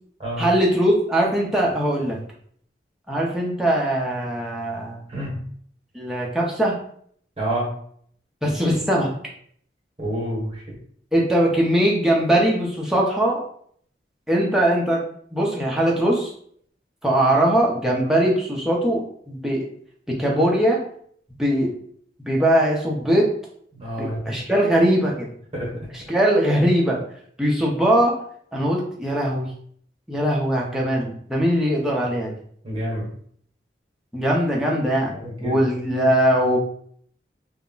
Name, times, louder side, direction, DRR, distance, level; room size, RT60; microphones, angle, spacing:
voice 1, 0.4-2.2 3.1-5.0 5.9-6.7 8.4-9.1 11.1-13.4 14.3-15.0 15.3-16.3 17.0-19.6 20.1-20.8 21.4-21.7 22.3-23.3 24.0-25.3 25.9-27.0 27.4-28.2 28.5-29.5 30.1-32.3 34.1-35.1 35.4-36.6, right 1 dB, 5° right, -4 dB, 0.5 m, -21 dB
voice 2, 7.4-7.7 10.0-10.7 23.7-24.4 25.5-25.7 32.6-33.1 35.1-35.6, right 1 dB, 35° right, -4 dB, 0.9 m, -28 dB
2.2 x 2.0 x 3.7 m, 0.62 s
head